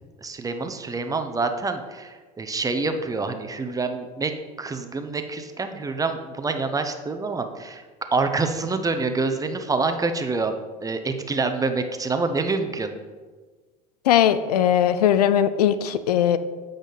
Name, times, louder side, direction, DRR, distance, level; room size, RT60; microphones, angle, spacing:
voice 1, 0.2-4.3 4.6-7.8 8.1-10.5 10.8-13.0, right 3 dB, 20° right, 7 dB, 0.8 m, -26 dB
voice 2, 14.1-16.4, left 10 dB, 90° left, 13 dB, 0.5 m, -19 dB
8.4 x 5.1 x 4.0 m, 1.4 s
hypercardioid pair, 85°, 19 cm